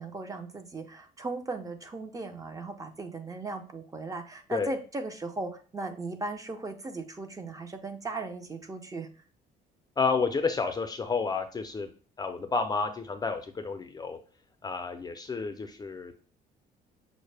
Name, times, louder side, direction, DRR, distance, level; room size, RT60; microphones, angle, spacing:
voice 1, 0.0-9.1, right 3 dB, 20° right, 6 dB, 0.6 m, -37 dB
voice 2, 10.0-11.9 12.2-14.2 14.6-16.1, left 4 dB, 25° left, 7 dB, 0.5 m, -30 dB
6.3 x 2.1 x 3.3 m, 0.38 s
cardioid pair, 110°, 17 cm